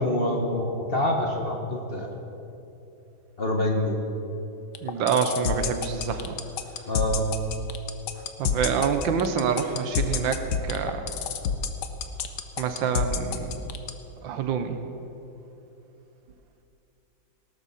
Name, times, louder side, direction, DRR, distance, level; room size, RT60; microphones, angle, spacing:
voice 1, 0.0-2.1 3.4-4.0 6.9-7.3, left 1 dB, 35° left, 1 dB, 1.1 m, -26 dB
sound 1, 4.7-13.9, left 7 dB, 65° left, 1.3 m, -27 dB
voice 2, 4.8-6.4 8.4-11.1 12.6-13.6 14.2-14.8, right 6 dB, 80° right, 8 dB, 1.6 m, -27 dB
18.0 x 12.5 x 4.2 m, 2.9 s
omnidirectional pair, 2.1 m